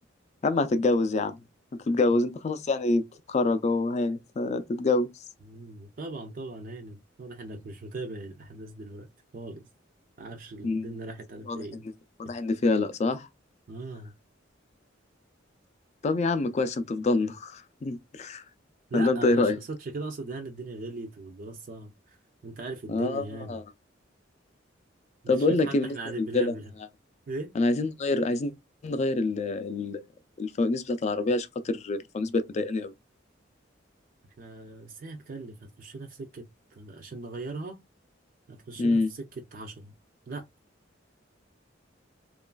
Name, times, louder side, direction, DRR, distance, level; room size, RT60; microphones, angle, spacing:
voice 1, 0.4-1.4 1.9-5.1 10.6-10.9 11.5-11.6 12.2-13.3 16.0-18.4 18.9-19.6 22.9-23.6 25.3-26.5 27.6-28.5 28.8-30.0 30.4-32.9 38.8-39.1, left 2 dB, 35° left, 0.3 m, -26 dB
voice 2, 5.4-9.1 9.3-9.6 10.2-11.9 13.7-14.1 18.9-22.2 22.4-23.6 25.4-26.7 27.3-27.5 34.4-37.8 38.5-39.9 40.3-40.4, right 3 dB, 45° right, 0.4 m, -39 dB
3.0 x 2.3 x 2.2 m
head